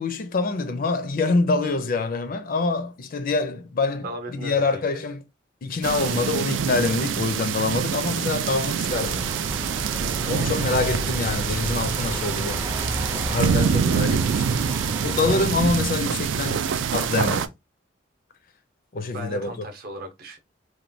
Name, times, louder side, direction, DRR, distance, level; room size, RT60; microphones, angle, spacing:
voice 1, 0.0-5.2 5.6-9.3 10.3-12.6 13.3-14.6 15.0-16.6 16.9-17.5 18.9-19.5, left 3 dB, 50° left, 0.4 m, -25 dB
voice 2, 4.0-5.0 10.3-10.8 19.1-20.4, right 1 dB, 55° right, 0.7 m, -37 dB
sound 1, 5.8-17.5, right 7 dB, 85° right, 0.3 m, -25 dB
sound 2, 8.9-15.5, right 1 dB, 15° right, 0.4 m, -32 dB
3.1 x 2.2 x 2.6 m
head